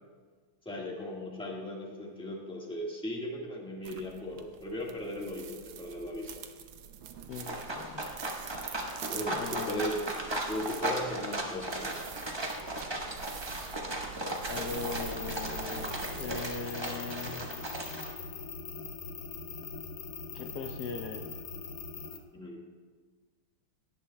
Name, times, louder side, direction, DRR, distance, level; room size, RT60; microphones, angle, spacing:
voice 1, 0.6-6.3 9.0-10.0 10.5-12.0 22.3-22.6, left 1 dB, 5° left, -2 dB, 1.2 m, -37 dB
sound 1, 3.8-16.5, right 8 dB, 75° right, 1.4 m, -45 dB
voice 2, 7.3-8.0 9.3-9.8 14.5-17.5 20.3-21.3, left 4 dB, 90° left, 4 dB, 0.8 m, -39 dB
sound 2, 7.3-18.1, right 1 dB, 30° right, 0.4 m, -36 dB
sound 3, 14.7-22.2, left 4 dB, 55° left, 1.0 m, -42 dB
18.0 x 9.9 x 2.3 m, 1.5 s
omnidirectional pair, 2.4 m